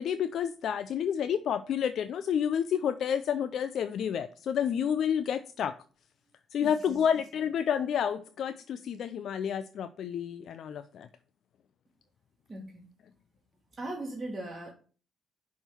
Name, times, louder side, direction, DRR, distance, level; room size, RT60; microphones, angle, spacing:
voice 1, 0.0-5.7 6.5-11.1, left 8 dB, 70° left, 0.4 m, -30 dB
voice 2, 6.6-7.0 12.5-12.9 13.7-14.7, right 1 dB, 20° right, 1.8 m, -39 dB
6.0 x 3.6 x 5.9 m
cardioid pair, 90°, 0 cm